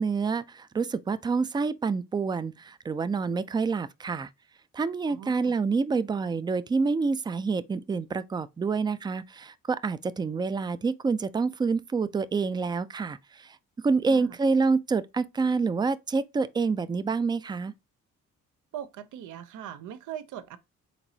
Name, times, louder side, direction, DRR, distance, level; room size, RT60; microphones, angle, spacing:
voice 1, 0.0-4.3 4.7-13.6 13.8-17.7, right 4 dB, 15° right, 0.3 m, -27 dB
voice 2, 5.1-5.6 14.1-14.4 18.7-20.6, right 10 dB, 80° right, 0.6 m, -40 dB
4.5 x 3.9 x 2.7 m
cardioid pair, 90°, 30 cm